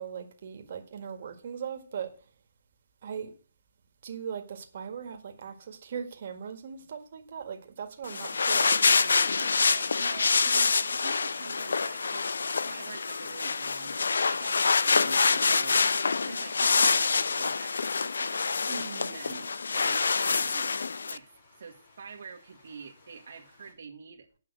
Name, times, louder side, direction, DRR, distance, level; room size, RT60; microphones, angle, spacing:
voice 1, 0.0-2.1 3.0-3.3 4.0-8.8 18.7-19.2, right 7 dB, 50° right, 1.8 m, -39 dB
sound 1, 8.0-21.2, left 4 dB, 85° left, 0.5 m, -26 dB
voice 2, 8.9-12.3 12.7-14.0 14.3-16.0 16.2-18.5 19.0-20.0 20.3-20.8 21.1-21.3 21.6-24.3, right 5 dB, 70° right, 1.5 m, -46 dB
sound 2, 11.2-23.7, left 3 dB, 50° left, 4.9 m, -60 dB
8.4 x 5.6 x 7.9 m
hypercardioid pair, 160°, 0 cm